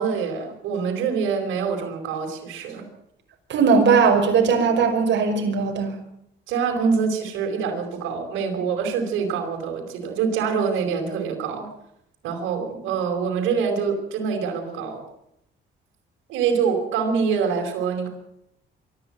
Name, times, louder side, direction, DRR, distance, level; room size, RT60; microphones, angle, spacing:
voice 1, 0.0-2.9 6.5-11.7 12.2-15.0 16.3-18.1, right 6 dB, 90° right, 2 dB, 4.8 m, -25 dB
voice 2, 3.5-6.0, right 5 dB, 65° right, 3 dB, 5.8 m, -19 dB
24.5 x 13.0 x 8.9 m, 0.77 s
cardioid pair, 90°, 20 cm